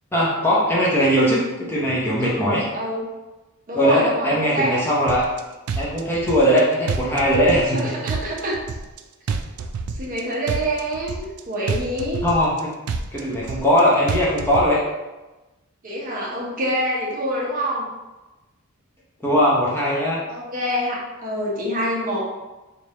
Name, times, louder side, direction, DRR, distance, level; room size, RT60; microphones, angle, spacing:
voice 1, 0.1-2.7 3.7-5.2 5.8-7.9 12.2-12.7 13.1-14.8 19.2-20.2, equal, 10° left, -6 dB, 0.7 m, -19 dB
voice 2, 2.2-3.0 3.7-4.7 7.7-8.6 10.0-12.2 15.8-17.9 20.3-22.2, equal, 40° right, -4 dB, 0.8 m, -26 dB
sound 1, 5.1-5.4 5.7-6.6 6.9-7.8 8.1-9.0 9.3-10.2 10.5-11.4 11.7-12.6 12.9-13.8 14.1-14.7, right 5 dB, 90° right, 0.4 m, -28 dB
3.3 x 2.4 x 4.1 m, 1.1 s
head